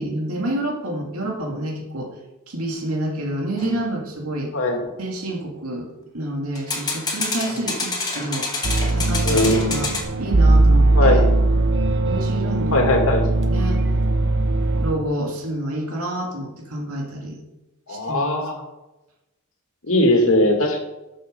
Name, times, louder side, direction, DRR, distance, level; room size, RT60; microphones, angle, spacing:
voice 1, 0.0-2.1 2.5-4.5 5.0-5.9 6.1-8.5 8.9-9.9 10.2-11.2 12.0-13.8 14.8-17.4 17.9-18.4, right 1 dB, 75° right, 1 dB, 2.4 m, -28 dB
sound 1, 3.6-3.8 6.5-10.0, left 3 dB, 20° left, 2.1 m, -27 dB
sound 2, 8.6-14.9, right 2 dB, 55° right, 1.0 m, -19 dB
voice 2, 9.2-9.6 10.9-11.2 12.7-13.2 17.9-18.6 19.8-20.8, left 1 dB, 65° left, 2 dB, 2.4 m, -19 dB
12.5 x 6.8 x 5.4 m, 0.98 s
head